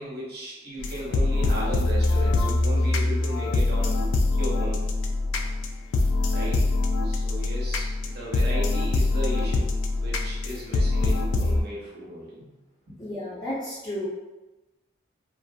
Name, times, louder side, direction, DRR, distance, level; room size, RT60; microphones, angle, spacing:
voice 1, 0.0-3.9 4.3-4.8 6.3-6.7 7.0-9.7 10.0-12.6 12.9-13.0, right 1 dB, 50° right, -6 dB, 0.8 m, -36 dB
sound 1, 0.8-11.6, left 2 dB, 85° left, 0.3 m, -24 dB
voice 2, 13.0-14.1, left 1 dB, 20° left, -10 dB, 0.5 m, -32 dB
2.6 x 2.5 x 2.2 m, 1.1 s
head